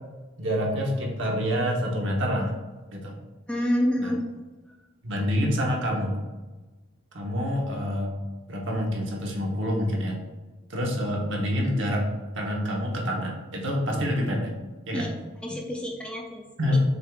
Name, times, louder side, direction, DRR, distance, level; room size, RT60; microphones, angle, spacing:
voice 1, 0.4-2.5 2.9-3.2 4.0-4.1 5.0-6.2 7.1-8.1 8.5-10.2 10.7-12.1 12.3-14.5 14.9-15.1 16.6-16.8, equal, 70° right, -1 dB, 1.0 m, -27 dB
voice 2, 3.5-4.2 4.7-4.8 14.9-15.1 15.4-16.4 16.7-16.8, equal, 5° left, 0 dB, 0.4 m, -28 dB
6.3 x 3.5 x 2.4 m, 1.2 s
head